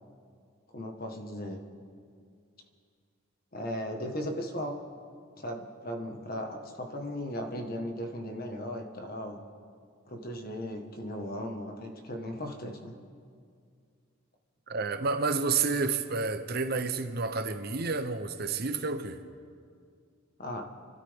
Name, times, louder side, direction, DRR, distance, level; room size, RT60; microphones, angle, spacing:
voice 1, 0.7-1.6 3.5-4.8 5.4-9.4 10.1-12.9 20.4-20.7, equal, 45° left, 4 dB, 1.5 m, -37 dB
voice 2, 14.7-19.2, right 4 dB, 50° right, 9 dB, 0.8 m, -30 dB
28.5 x 12.5 x 3.6 m, 2.2 s
head